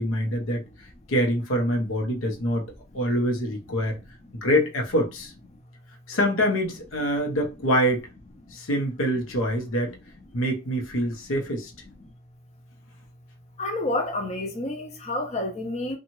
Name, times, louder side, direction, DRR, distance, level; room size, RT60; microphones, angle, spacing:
voice 1, 0.0-2.6 2.9-4.0 4.4-5.3 6.1-8.1 8.5-9.9 10.3-11.7, equal, 85° left, 0.8 m, -25 dB
voice 2, 13.6-16.0, left 1 dB, 35° left, 0.6 m, -29 dB
2.7 x 2.3 x 2.9 m
head